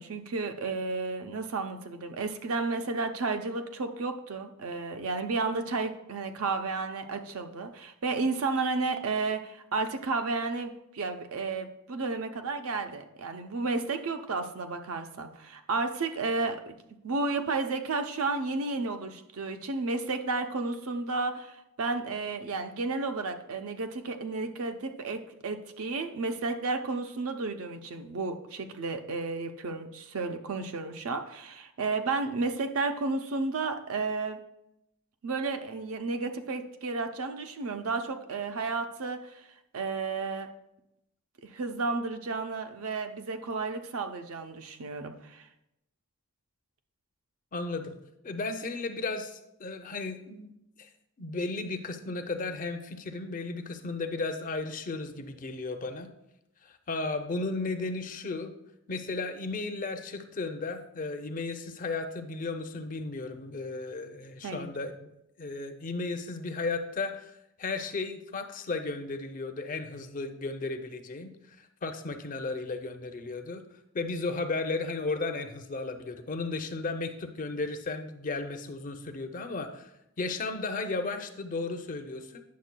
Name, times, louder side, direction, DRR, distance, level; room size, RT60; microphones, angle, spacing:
voice 1, 0.0-16.8 17.0-34.4 35.2-39.4 39.7-40.5 41.4-45.5 64.4-64.7, right 3 dB, 80° right, 7 dB, 0.6 m, -32 dB
voice 2, 47.5-48.0 48.2-50.5 50.8-50.9 51.2-56.1 56.6-58.5 58.9-65.1 65.4-67.3 67.6-71.3 71.6-73.6 73.9-79.9 80.2-82.4, left 3 dB, 40° left, 7 dB, 0.5 m, -34 dB
9.4 x 6.3 x 2.2 m, 0.84 s
head